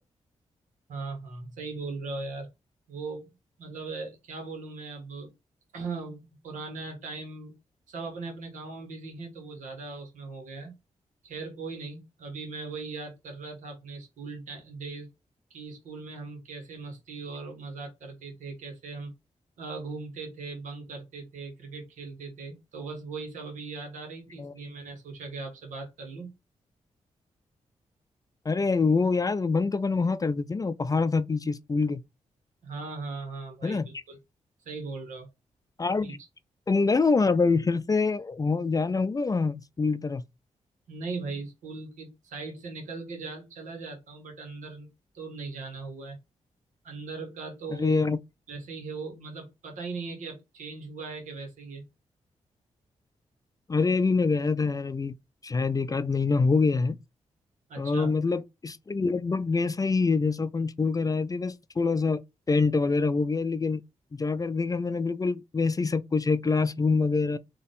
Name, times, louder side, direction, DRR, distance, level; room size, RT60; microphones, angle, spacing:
voice 1, 0.9-2.5 2.9-3.3 3.6-5.3 5.7-7.5 7.9-10.7 11.2-15.1 15.5-19.1 19.6-26.3 32.6-34.2 34.6-35.3 36.0-36.1 40.9-44.9 45.1-46.2 46.8-48.1 48.5-51.8 57.7-58.1, right 4 dB, 90° right, 1.6 m, -39 dB
voice 2, 28.5-32.0 33.6-33.9 35.8-36.2 36.7-40.2 47.7-48.2 53.7-55.1 55.4-57.0 57.8-62.2 62.5-63.8 64.1-67.4, left 4 dB, 30° left, 0.4 m, -25 dB
4.1 x 2.9 x 3.5 m
cardioid pair, 60°, 13 cm